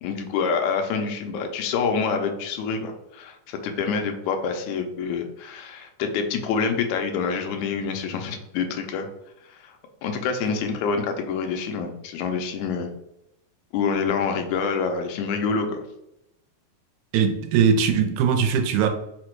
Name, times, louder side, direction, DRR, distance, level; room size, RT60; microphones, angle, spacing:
voice 1, 0.0-9.1 9.5-9.8 10.0-12.9 13.7-15.8, left 5 dB, 80° left, 5 dB, 2.0 m, -27 dB
voice 2, 17.1-18.9, right 7 dB, 80° right, 4 dB, 1.9 m, -20 dB
4.9 x 2.2 x 4.4 m, 0.85 s
omnidirectional pair, 3.5 m